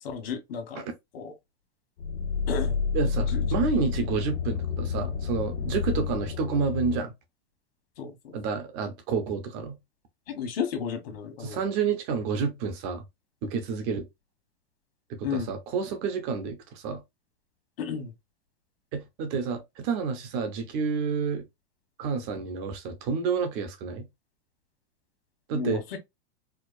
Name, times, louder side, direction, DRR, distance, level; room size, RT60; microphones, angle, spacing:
voice 1, 0.0-0.8 1.1-1.3 2.5-2.8 3.3-3.5 8.0-8.4 10.3-11.6 15.2-15.5 17.8-18.1 25.5-26.0, left 6 dB, 65° left, 1.3 m, -33 dB
sound 1, 2.0-7.0, left 6 dB, 85° left, 0.9 m, -29 dB
voice 2, 2.9-7.1 8.3-9.8 11.4-13.0 13.4-14.1 15.1-17.0 18.9-21.5 22.0-24.1 25.5-25.8, right 5 dB, 20° right, 0.4 m, -29 dB
4.5 x 2.1 x 2.4 m
supercardioid pair, 175°, 31 cm